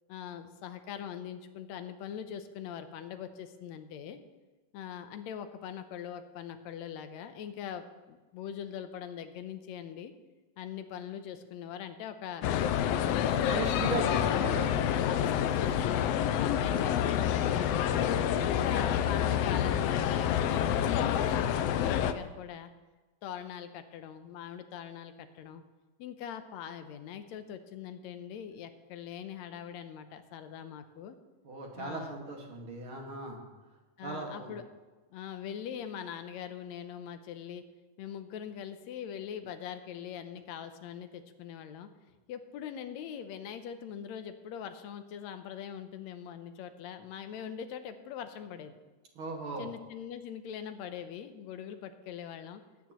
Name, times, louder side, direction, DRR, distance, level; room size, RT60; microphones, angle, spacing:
voice 1, 0.1-4.2 4.7-10.1 10.6-13.1 13.5-14.1 15.1-18.0 18.5-22.7 23.2-25.6 26.0-31.2 31.8-32.2 34.0-34.6 35.1-37.6 38.0-41.9 42.3-48.8 49.6-52.6, left 9 dB, 75° left, 9 dB, 1.9 m, -42 dB
sound 1, 12.4-22.1, left 9 dB, 90° left, 1.4 m, -28 dB
voice 2, 13.4-14.7 31.4-33.4 34.0-34.5 49.2-49.7, right 2 dB, 45° right, 0 dB, 2.5 m, -37 dB
21.0 x 9.1 x 3.0 m, 1.2 s
omnidirectional pair, 3.5 m